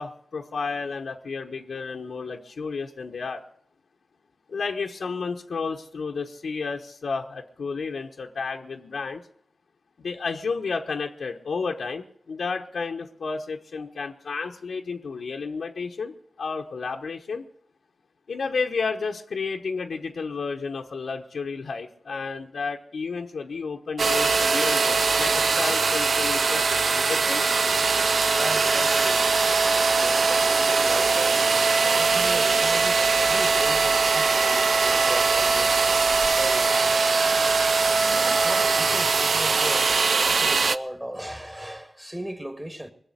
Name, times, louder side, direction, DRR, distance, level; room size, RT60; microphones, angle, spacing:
voice 1, 0.0-3.4 4.5-9.3 10.0-17.4 18.3-27.4, left 4 dB, 85° left, 1.1 m, -32 dB
sound 1, 24.0-40.8, right 4 dB, 75° right, 0.5 m, -21 dB
voice 2, 28.3-29.3 29.9-35.8 36.2-37.0 38.1-42.9, right 1 dB, 15° right, 2.2 m, -37 dB
20.0 x 7.1 x 9.8 m
cardioid pair, 55°, 0 cm